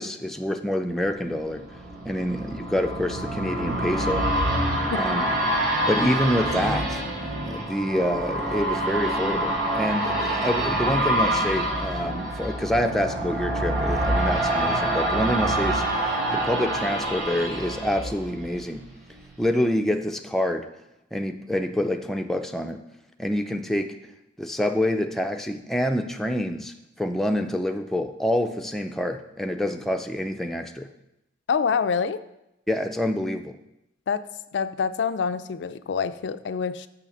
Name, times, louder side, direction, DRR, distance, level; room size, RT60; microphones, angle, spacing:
voice 1, 0.0-1.6 2.1-4.4 4.9-5.3 5.9-7.0 7.5-18.8 19.4-20.7 21.1-22.8 23.2-23.9 24.4-30.9 32.7-33.6, left 1 dB, ahead, 0.4 m, -27 dB
sound 1, 1.0-18.8 19.2-19.3, right 1 dB, 80° right, 3.3 m, -26 dB
voice 2, 31.5-32.2 34.1-34.3 34.5-36.9, left 6 dB, 75° left, 0.4 m, -26 dB
6.3 x 5.8 x 7.0 m
head